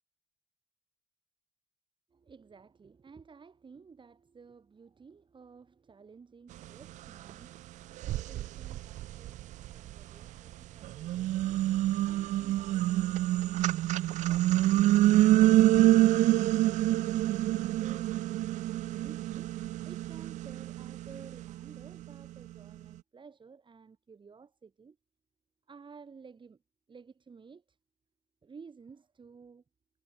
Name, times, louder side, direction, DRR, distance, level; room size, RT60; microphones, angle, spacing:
voice 1, 2.1-17.1 17.5-19.5 19.8-25.0 25.7-26.6 26.9-27.8 28.4-29.6, right 5 dB, 40° right, 7.3 m, -54 dB
sound 1, 7.3-7.4 8.0-10.3 10.8-22.1, right 15 dB, 70° right, 0.4 m, -26 dB
cardioid pair, 75°, 13 cm